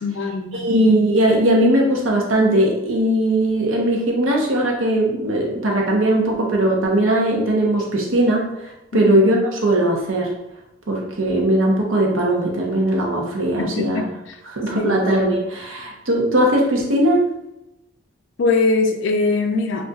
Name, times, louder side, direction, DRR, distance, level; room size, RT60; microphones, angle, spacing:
voice 1, 0.0-0.7 8.9-9.1 13.6-14.4 14.8-15.0 18.4-19.8, left 3 dB, 65° left, 3 dB, 0.4 m, -22 dB
voice 2, 0.5-8.4 8.9-10.3 10.9-14.0 14.5-17.2, right 1 dB, 90° right, -1 dB, 0.8 m, -19 dB
2.3 x 2.3 x 3.9 m, 0.87 s
head